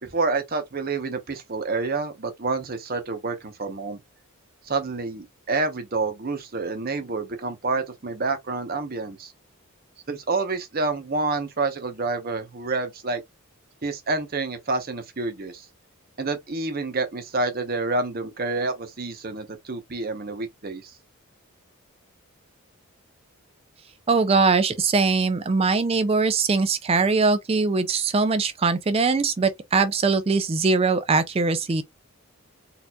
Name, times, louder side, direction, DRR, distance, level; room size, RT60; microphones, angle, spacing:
voice 1, 0.0-4.0 4.6-9.3 10.1-13.2 13.8-15.7 16.2-21.0, right 3 dB, 40° right, 0.7 m, -28 dB
voice 2, 24.1-31.8, right 4 dB, 25° right, 0.3 m, -21 dB
4.3 x 2.5 x 2.2 m
head